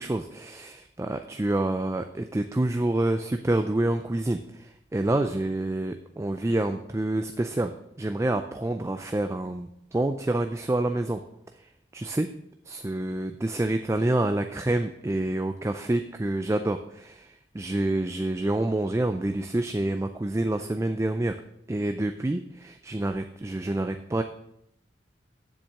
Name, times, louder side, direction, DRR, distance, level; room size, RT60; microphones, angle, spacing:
voice 1, 0.0-11.2 11.6-12.3 12.7-21.4 21.7-24.2, right 1 dB, 15° right, 7 dB, 0.3 m, -28 dB
7.6 x 7.2 x 6.3 m, 0.78 s
head